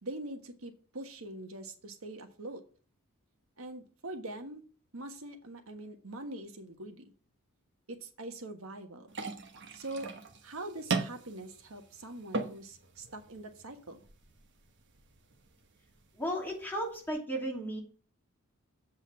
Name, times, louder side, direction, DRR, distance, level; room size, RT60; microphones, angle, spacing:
voice 1, 0.0-2.6 3.6-4.6 4.9-7.0 7.9-9.1 9.7-10.1 10.4-14.0, right 2 dB, 70° right, 6 dB, 1.4 m, -43 dB
sound 1, 9.1-17.1, right 4 dB, 55° right, 1.1 m, -40 dB
voice 2, 16.2-17.8, equal, 10° left, -2 dB, 2.7 m, -34 dB
7.9 x 5.4 x 7.1 m, 0.40 s
head